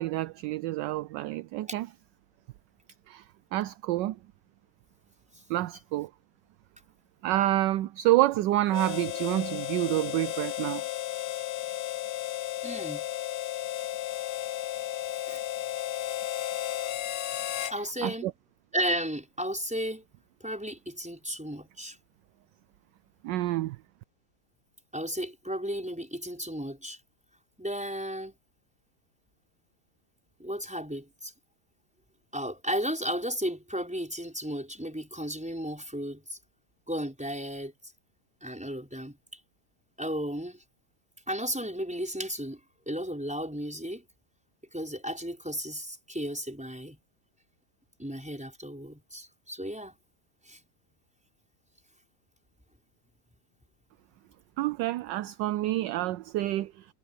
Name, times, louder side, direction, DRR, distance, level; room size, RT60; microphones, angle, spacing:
voice 1, 0.0-1.9 3.1-3.2 3.5-4.2 5.5-6.1 7.2-10.8 18.0-18.3 23.2-23.8 54.6-56.9, right 15 dB, 75° right, 1.1 m, -28 dB
Harmonica, 8.7-17.8, left 13 dB, 65° left, 1.2 m, -34 dB
voice 2, 12.6-13.1 15.2-15.4 17.6-18.3 18.7-20.0 20.4-22.0 24.9-27.0 27.6-28.4 30.4-31.3 32.3-36.4 36.9-37.9 38.4-39.4 40.0-40.6 41.3-42.6 42.9-44.0 44.7-47.0 48.0-50.0 50.5-50.6, equal, 5° right, 5.7 m, -34 dB
omnidirectional pair, 2.2 m